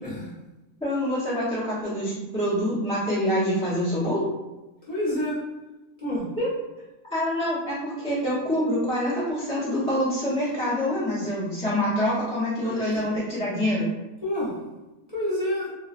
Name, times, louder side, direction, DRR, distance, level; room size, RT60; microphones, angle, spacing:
voice 1, 0.0-0.3 4.9-5.4 6.0-6.3 12.6-13.2 14.2-14.6 15.1-15.7, left 1 dB, 30° left, -11 dB, 0.9 m, -29 dB
voice 2, 0.8-4.3 6.4-6.5 7.1-13.9, equal, 5° left, -10 dB, 0.6 m, -26 dB
2.4 x 2.2 x 2.4 m, 1.0 s
omnidirectional pair, 1.4 m